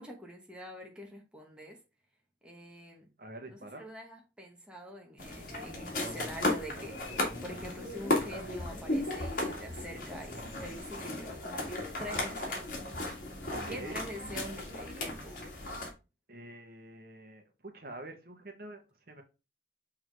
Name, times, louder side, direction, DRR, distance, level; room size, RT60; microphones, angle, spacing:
voice 1, 0.0-1.8 2.4-3.1 3.5-12.8 13.7-15.4, equal, 5° right, 1.1 m, -45 dB
voice 2, 3.2-3.8 13.5-14.0 16.3-19.2, right 2 dB, 50° right, 1.2 m, -46 dB
sound 1, 5.2-15.9, left 2 dB, 50° left, 2.1 m, -35 dB
6.2 x 3.7 x 4.6 m
head